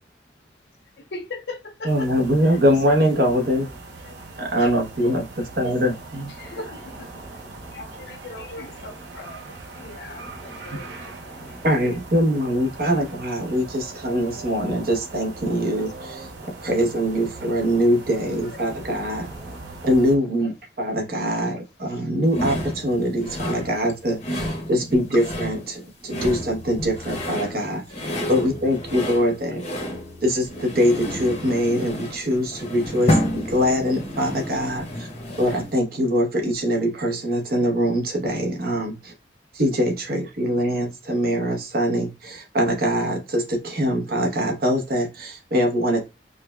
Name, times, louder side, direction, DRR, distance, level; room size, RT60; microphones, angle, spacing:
voice 1, 1.1-2.1 4.1-4.2 6.6-6.8 7.7-9.4 9.8-10.9 12.8-12.9, left 2 dB, 70° left, 0.6 m, -37 dB
voice 2, 1.8-3.7 4.4-5.2 5.6-6.3 10.7-10.8 11.6-16.3 16.6-19.3 19.8-29.6 30.2-35.1 35.4-39.1 39.5-46.0, equal, 55° right, 0.8 m, -23 dB
sound 1, 1.9-20.2, right 3 dB, 85° right, 0.7 m, -40 dB
voice 3, 6.4-7.7 8.4-9.1 9.7-11.9 19.1-19.6, equal, 5° left, 0.3 m, -48 dB
sound 2, 22.3-35.8, equal, 40° left, 0.8 m, -30 dB
4.8 x 2.2 x 2.2 m
head